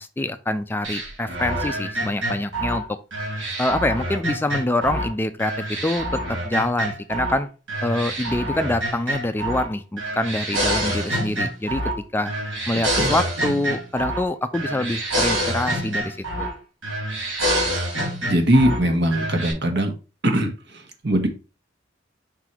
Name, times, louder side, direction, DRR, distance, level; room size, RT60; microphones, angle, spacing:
voice 1, 0.0-2.8 3.6-7.5 7.8-11.8 12.1-12.3 12.7-16.5, left 1 dB, 10° left, 0.3 m, -25 dB
sound 1, 0.8-5.1 5.4-7.4 7.7-9.7 10.0-12.0 12.3-14.3 14.5-16.6 16.8-18.8 19.1-19.5, right 1 dB, 85° right, 3.1 m, -26 dB
voice 2, 18.2-19.9 20.2-21.3, right 1 dB, 65° right, 1.4 m, -21 dB
5.6 x 4.0 x 4.5 m
head